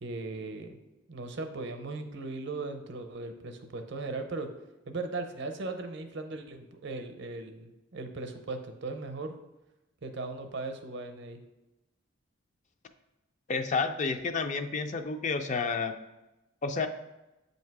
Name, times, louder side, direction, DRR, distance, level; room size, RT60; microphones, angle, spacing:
voice 1, 0.0-4.5 4.9-9.3 10.0-11.4, right 3 dB, 60° right, 6 dB, 0.6 m, -38 dB
voice 2, 13.5-15.9 16.6-16.9, left 4 dB, 35° left, 7 dB, 0.4 m, -30 dB
7.8 x 2.7 x 4.6 m, 1.0 s
head